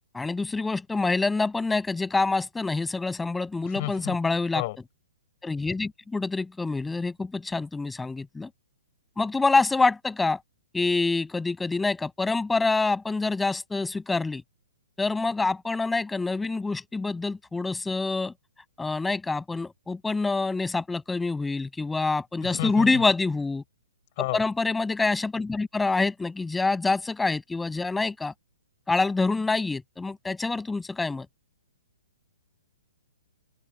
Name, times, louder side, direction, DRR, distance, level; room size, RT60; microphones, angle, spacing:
voice 1, 0.1-4.6 5.4-8.5 9.2-10.4 10.7-14.4 15.0-18.3 18.8-23.6 24.3-28.3 28.9-31.3, left 3 dB, 5° left, 6.8 m, -26 dB
voice 2, 3.7-4.2 4.5-4.8 22.4-23.0 24.2-24.4, left 21 dB, 45° left, 6.1 m, -31 dB
open air
figure-of-eight pair, 125°, 0 cm